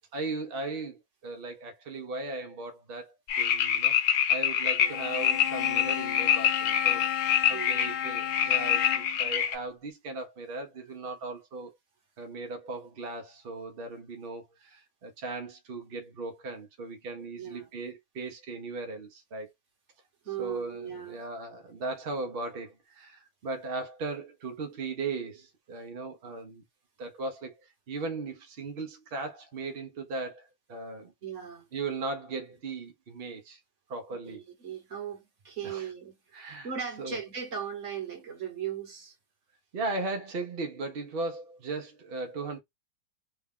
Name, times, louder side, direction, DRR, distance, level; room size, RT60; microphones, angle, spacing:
voice 1, 0.1-7.1 7.5-11.7 12.2-19.5 20.4-26.6 27.0-31.1 31.7-33.6 33.9-34.4 35.6-35.8 36.3-36.7 37.0-37.2 39.7-42.6, right 3 dB, 80° right, 0.5 m, -37 dB
sound 1, 3.3-9.6, left 9 dB, 65° left, 1.2 m, -26 dB
Bowed string instrument, 4.8-9.3, left 11 dB, 85° left, 1.3 m, -34 dB
voice 2, 17.4-17.7 20.2-21.2 31.2-31.7 34.2-39.1, right 8 dB, 45° right, 1.3 m, -38 dB
3.4 x 2.3 x 3.5 m
omnidirectional pair, 2.1 m